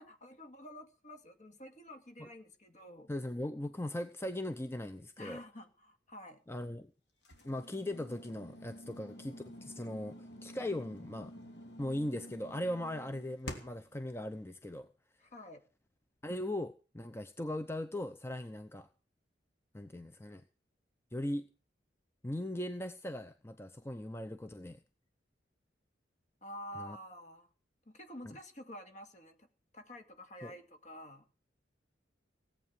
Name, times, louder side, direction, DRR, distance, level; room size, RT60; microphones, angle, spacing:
voice 1, 0.0-3.1 5.2-6.4 15.2-15.6 26.4-27.5 27.9-29.5 29.7-31.3, left 1 dB, 40° left, 7 dB, 2.2 m, -49 dB
voice 2, 3.1-5.4 6.5-6.9 7.4-11.3 11.8-14.9 16.2-18.9 19.7-20.4 21.1-21.5 22.2-24.8 26.7-27.0 30.4-30.5, left 1 dB, 15° left, 9 dB, 0.7 m, -39 dB
sound 1, 7.2-13.9, equal, 70° left, 3.3 m, -49 dB
17.5 x 8.6 x 7.4 m, 0.36 s
head